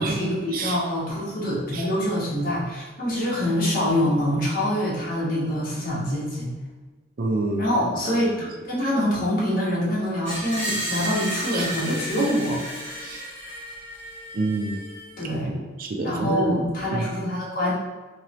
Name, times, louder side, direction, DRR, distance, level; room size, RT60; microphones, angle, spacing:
voice 1, 0.0-6.5 7.6-12.6 15.2-15.5 16.0-17.7, equal, 50° left, -7 dB, 1.4 m, -25 dB
voice 2, 7.2-8.0 11.5-11.7 13.0-13.2 14.3-14.8 15.3-16.6 16.9-17.1, right 2 dB, 50° right, 3 dB, 0.5 m, -28 dB
Screech, 10.3-15.2, equal, 10° left, 1.5 m, -33 dB
3.7 x 3.1 x 3.0 m, 1.3 s
head